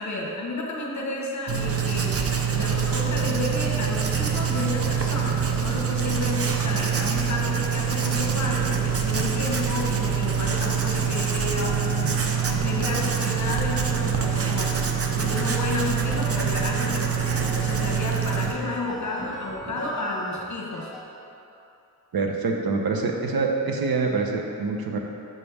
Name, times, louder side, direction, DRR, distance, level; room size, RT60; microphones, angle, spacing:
voice 1, 0.0-2.2 2.5-14.7 15.1-20.9, left 2 dB, 50° left, -2 dB, 1.0 m, -31 dB
Writing, 1.5-18.5, right 7 dB, 40° right, 0.5 m, -25 dB
sound 1, 11.1-20.5 20.7-21.0, right 1 dB, ahead, 1.0 m, -40 dB
voice 2, 22.1-25.0, right 4 dB, 70° right, 1 dB, 0.8 m, -25 dB
5.7 x 5.3 x 4.7 m, 2.8 s
wide cardioid pair, 150°, 38 cm